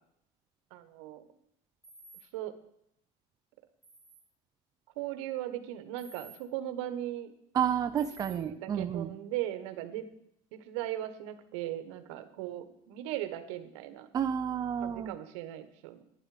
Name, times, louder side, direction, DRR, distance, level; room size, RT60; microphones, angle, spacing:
voice 1, 0.7-1.3 2.3-2.5 5.0-7.3 8.3-10.1 10.5-14.1 14.8-16.0, right 13 dB, 90° right, 11 dB, 1.3 m, -38 dB
sound 1, 1.8-2.2 3.8-4.2 6.0-6.4 8.0-8.3, right 3 dB, ahead, 4.9 m, -52 dB
voice 2, 7.5-9.1 14.1-15.1, right 8 dB, 25° right, 8 dB, 0.4 m, -30 dB
11.0 x 10.0 x 5.0 m, 0.75 s
cardioid pair, 145°, 15 cm